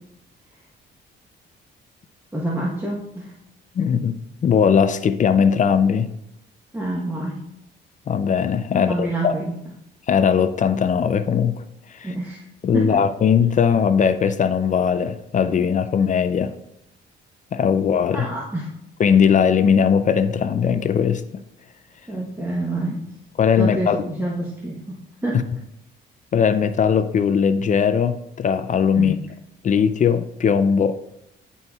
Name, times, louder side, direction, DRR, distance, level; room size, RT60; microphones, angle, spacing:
voice 1, 2.3-3.3 6.7-7.4 8.7-9.5 12.0-12.4 12.7-13.0 18.1-18.7 22.1-23.0 23.5-25.4 29.0-29.2, right 1 dB, 10° right, -4 dB, 1.1 m, -27 dB
voice 2, 3.8-6.1 8.1-9.4 10.1-11.6 11.9-12.1 12.6-16.5 17.5-18.3 19.0-21.2 23.4-24.0 25.3-25.4 26.3-29.2 29.6-31.0, left 7 dB, 40° left, 11 dB, 0.4 m, -19 dB
10.5 x 4.0 x 2.4 m, 0.82 s
cardioid pair, 90°, 20 cm